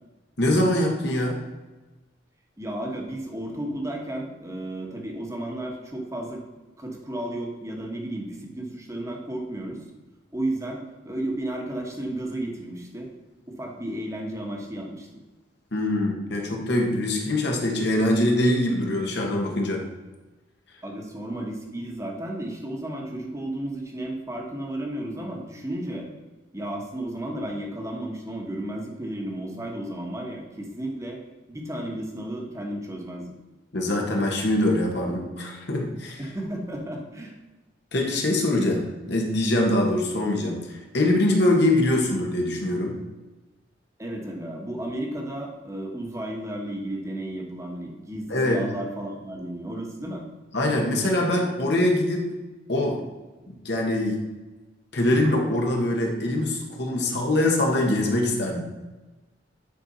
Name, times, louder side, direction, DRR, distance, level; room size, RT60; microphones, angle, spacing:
voice 1, 0.4-1.4 15.7-19.8 33.7-36.2 37.9-42.9 48.3-48.6 50.5-52.3 52.7-53.0 53.5-54.2 54.9-58.6, left 1 dB, 60° left, 0 dB, 1.4 m, -23 dB
voice 2, 2.6-6.4 6.8-9.8 10.3-13.1 13.5-15.1 20.8-26.1 26.5-31.2 31.5-33.3 36.2-37.4 44.0-50.3, right 1 dB, 15° right, 0 dB, 1.3 m, -33 dB
10.5 x 4.5 x 4.1 m, 1.2 s
head